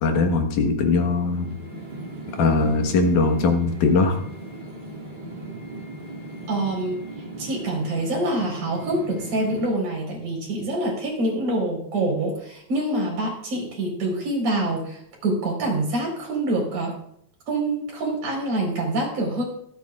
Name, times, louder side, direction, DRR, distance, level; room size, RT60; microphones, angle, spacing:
voice 1, 0.0-1.5 2.3-4.2, left 3 dB, 85° left, 4 dB, 3.0 m, -20 dB
sound 1, 0.6-9.7, right 2 dB, 20° right, 3.0 m, -38 dB
voice 2, 6.5-7.0 7.4-17.0 17.5-19.4, right 1 dB, 85° right, -1 dB, 6.0 m, -26 dB
25.0 x 8.7 x 2.5 m, 0.68 s
omnidirectional pair, 3.4 m